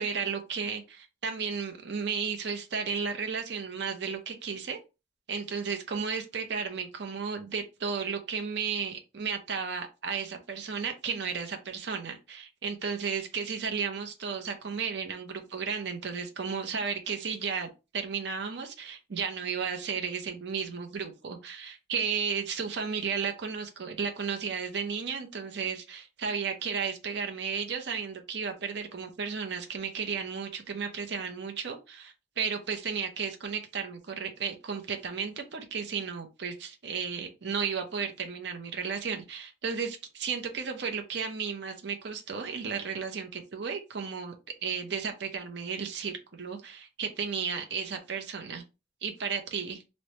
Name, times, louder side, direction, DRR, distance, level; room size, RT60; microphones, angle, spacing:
voice 1, 0.0-4.8 5.3-44.3 44.6-48.6 49.0-49.8, right 6 dB, 60° right, 4 dB, 0.6 m, -34 dB
3.2 x 2.1 x 2.7 m, 0.28 s
head